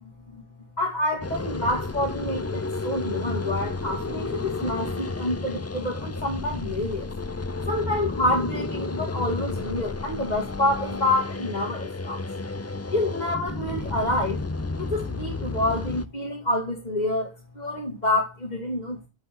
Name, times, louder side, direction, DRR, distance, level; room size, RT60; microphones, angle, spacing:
voice 1, 0.8-7.1 7.7-12.2 12.9-14.4 14.8-19.0, left 1 dB, 40° left, 2.5 m, -27 dB
sound 1, 1.2-16.1, left 3 dB, 20° left, 0.5 m, -32 dB
8.9 x 7.5 x 3.8 m
omnidirectional pair, 1.1 m